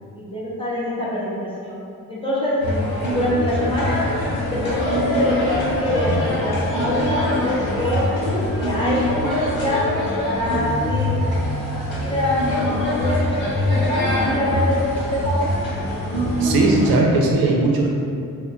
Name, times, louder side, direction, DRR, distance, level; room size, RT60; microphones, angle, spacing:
voice 1, 0.2-1.8 2.1-4.1 4.4-8.0 8.5-11.4 12.0-12.4 12.9-14.8 15.0-15.5, left 1 dB, 15° left, -8 dB, 0.4 m, -25 dB
sound 1, 2.6-17.0, left 1 dB, 90° left, 0.8 m, -23 dB
voice 2, 16.4-17.9, right 2 dB, 85° right, -1 dB, 0.5 m, -18 dB
2.1 x 2.0 x 3.7 m, 2.5 s
wide cardioid pair, 170°, 35 cm